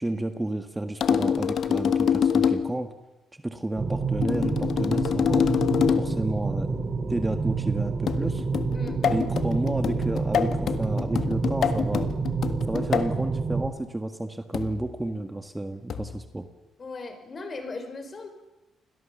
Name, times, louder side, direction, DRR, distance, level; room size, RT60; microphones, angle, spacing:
voice 1, 0.0-2.9 3.4-5.5 6.0-6.8 7.1-8.4 9.0-12.1 12.7-16.5, right 1 dB, 15° right, 7 dB, 1.7 m, -31 dB
sound 1, 1.0-2.8 4.2-6.2 8.1-13.2 14.5-14.9 15.9-16.2, left 7 dB, 65° left, 1.6 m, -26 dB
sound 2, 3.8-13.7, right 4 dB, 40° right, 2.6 m, -28 dB
voice 2, 16.8-18.3, left 3 dB, 40° left, 7 dB, 5.6 m, -37 dB
29.5 x 21.5 x 7.3 m, 1.0 s
cardioid pair, 85°, 0 cm